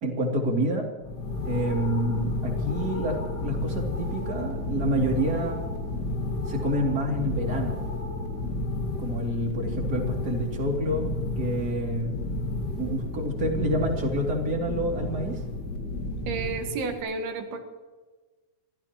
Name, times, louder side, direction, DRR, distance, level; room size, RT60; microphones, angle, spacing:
voice 1, 0.0-0.8 1.5-5.6 6.5-7.8 9.0-12.2 12.7-15.4, equal, 30° right, 0 dB, 2.5 m, -28 dB
sound 1, 1.0-17.0, left 2 dB, 85° left, 0.9 m, -31 dB
voice 2, 16.3-17.6, right 4 dB, 70° right, 4 dB, 3.7 m, -31 dB
27.5 x 15.5 x 3.0 m, 1.3 s
omnidirectional pair, 4.8 m